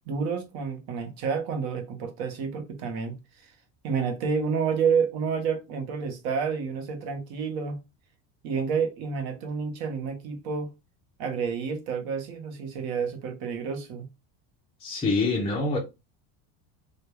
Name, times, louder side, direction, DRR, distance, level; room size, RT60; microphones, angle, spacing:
voice 1, 0.1-3.5 3.8-7.8 8.4-10.7 11.2-14.1, right 6 dB, 55° right, 0.7 m, -29 dB
voice 2, 14.8-15.8, left 3 dB, 15° left, 0.4 m, -25 dB
2.2 x 2.2 x 3.1 m
cardioid pair, 140°, 45 cm